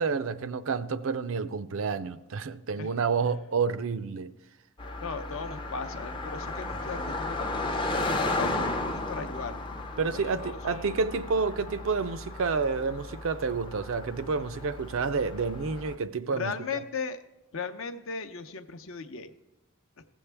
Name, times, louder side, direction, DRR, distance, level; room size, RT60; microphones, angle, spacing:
voice 1, 0.0-4.3 10.0-16.6, right 5 dB, 65° right, 0.4 m, -29 dB
voice 2, 4.8-9.6 10.1-10.9 16.4-17.2 17.5-19.3, left 5 dB, 65° left, 0.6 m, -37 dB
Car passing by, 4.8-15.9, left 2 dB, 20° left, 0.5 m, -34 dB
16.0 x 7.2 x 3.4 m
head